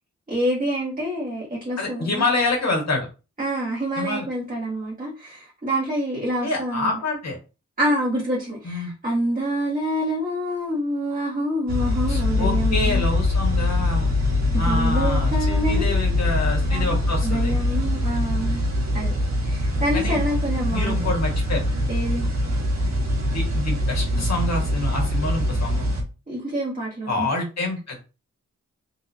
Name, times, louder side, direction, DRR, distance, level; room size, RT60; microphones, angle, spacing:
voice 1, 0.3-2.2 3.4-6.9 7.8-13.0 14.5-16.0 16.7-17.0 17.2-18.6 18.9-19.1 19.4-21.1 21.9-22.3 26.3-27.3, right 1 dB, 30° right, 1.6 m, -27 dB
voice 2, 1.8-3.1 4.0-4.3 6.4-7.4 8.6-8.9 12.1-14.1 14.6-17.6 19.9-20.2 20.7-21.6 23.3-25.9 27.1-28.2, left 2 dB, 65° left, 1.7 m, -27 dB
sound 1, 11.7-26.0, left 1 dB, 65° right, 1.5 m, -23 dB
3.8 x 2.9 x 2.8 m
cardioid pair, 75°, 29 cm